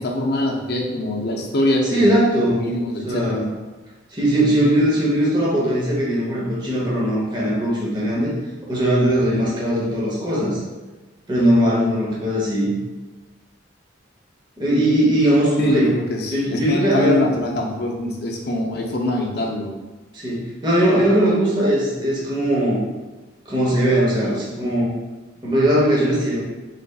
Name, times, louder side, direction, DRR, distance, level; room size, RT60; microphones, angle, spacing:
voice 1, 0.0-2.2 2.6-3.4 15.6-19.7, left 1 dB, 55° left, 0 dB, 0.6 m, -23 dB
voice 2, 1.9-2.6 3.0-3.4 4.1-8.3 8.7-10.6 11.3-12.8 14.6-15.9 16.3-17.2 20.1-22.8 23.5-24.9 25.4-26.4, right 1 dB, 25° right, -6 dB, 0.8 m, -19 dB
4.1 x 3.3 x 2.3 m, 1.2 s
head